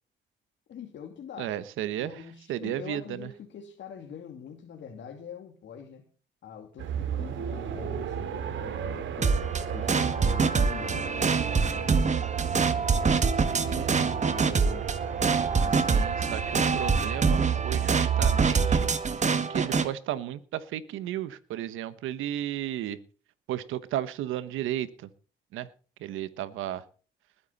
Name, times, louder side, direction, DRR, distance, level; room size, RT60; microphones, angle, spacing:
voice 1, 0.7-1.5 2.0-6.1 6.4-9.4 9.7-12.1 12.7-14.9, left 6 dB, 65° left, 2 dB, 2.6 m, -44 dB
voice 2, 1.4-2.2 2.5-3.3 13.5-13.9 15.7-16.4 16.7-18.9 19.5-23.0 23.5-25.1 25.5-25.7 26.0-26.8, right 12 dB, 90° right, 14 dB, 1.2 m, -34 dB
sound 1, 6.8-18.9, right 9 dB, 75° right, 2.4 m, -33 dB
sound 2, 9.2-19.9, right 5 dB, 35° right, 1.8 m, -25 dB
20.5 x 9.5 x 4.2 m, 0.38 s
cardioid pair, 90°, 20 cm